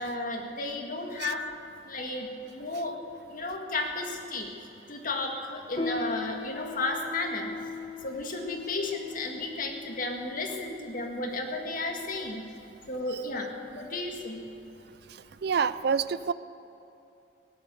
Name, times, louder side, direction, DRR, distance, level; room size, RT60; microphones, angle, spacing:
voice 1, 0.0-1.4 1.9-3.0 3.3-4.5 4.9-7.5 8.0-12.5 12.9-14.5, left 2 dB, 50° left, 2 dB, 1.9 m, -33 dB
Piano, 5.7-15.7, left 3 dB, 30° left, 1.2 m, -40 dB
voice 2, 15.1-16.3, right 6 dB, 65° right, 15 dB, 0.4 m, -28 dB
16.5 x 11.5 x 6.8 m, 2.7 s
head